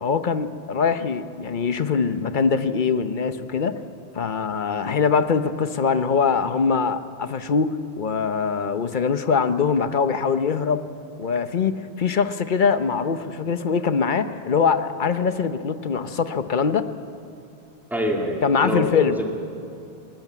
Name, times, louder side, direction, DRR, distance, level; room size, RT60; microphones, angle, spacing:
voice 1, 0.0-3.8 4.1-10.8 11.2-16.9 18.4-19.2, left 5 dB, 50° left, 11 dB, 0.9 m, -23 dB
voice 2, 17.9-19.4, equal, ahead, 0 dB, 2.3 m, -26 dB
23.5 x 13.5 x 9.2 m, 2.7 s
omnidirectional pair, 1.1 m